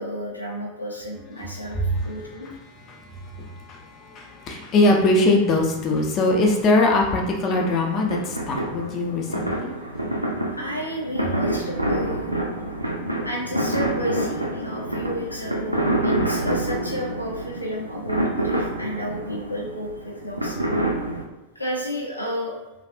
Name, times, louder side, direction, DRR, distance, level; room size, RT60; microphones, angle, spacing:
voice 1, 0.0-2.5 10.5-12.4 13.2-20.6 21.5-22.6, equal, 85° left, -3 dB, 0.6 m, -32 dB
voice 2, 1.7-2.1 2.4-2.5 2.9-9.7, left 2 dB, 30° left, 0 dB, 0.5 m, -22 dB
sound 1, 7.5-21.2, right 1 dB, 90° right, 0.4 m, -27 dB
3.3 x 2.4 x 2.5 m, 1.0 s
figure-of-eight pair, 90°, 0 cm